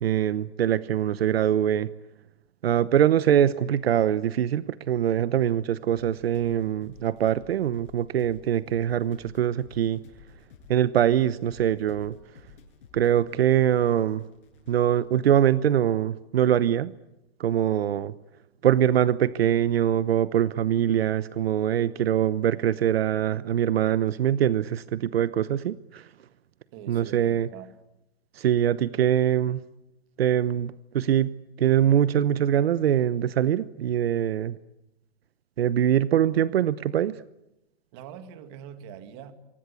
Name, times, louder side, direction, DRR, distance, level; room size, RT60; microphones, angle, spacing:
voice 1, 0.0-1.9 2.6-10.0 10.7-12.1 12.9-14.2 14.7-16.9 17.4-18.1 18.6-26.1 26.9-27.5 28.3-29.6 30.2-31.3 31.6-34.6 35.6-37.2, right 10 dB, 65° right, 15 dB, 1.0 m, -23 dB
sound 1, 5.9-15.5, left 6 dB, 55° left, 7.7 m, -53 dB
voice 2, 26.7-27.7 37.9-39.3, right 9 dB, 25° right, 9 dB, 2.0 m, -43 dB
28.5 x 24.5 x 8.4 m, 0.92 s
hypercardioid pair, 175°, 32 cm